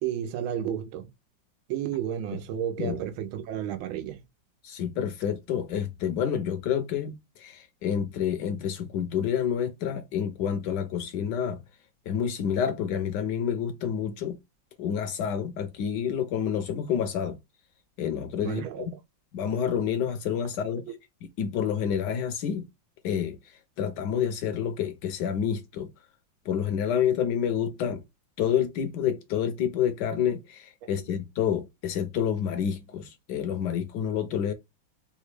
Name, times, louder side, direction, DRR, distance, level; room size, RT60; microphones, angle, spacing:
voice 1, 0.0-1.1 1.7-4.2 18.4-18.9 30.8-30.9, right 10 dB, 90° right, 1.5 m, -32 dB
voice 2, 4.6-11.6 12.1-14.4 14.8-17.4 18.0-18.6 19.3-20.9 21.4-22.6 23.0-25.9 26.4-28.0 28.4-34.5, left 8 dB, 70° left, 1.1 m, -28 dB
3.9 x 2.3 x 3.0 m
omnidirectional pair, 2.2 m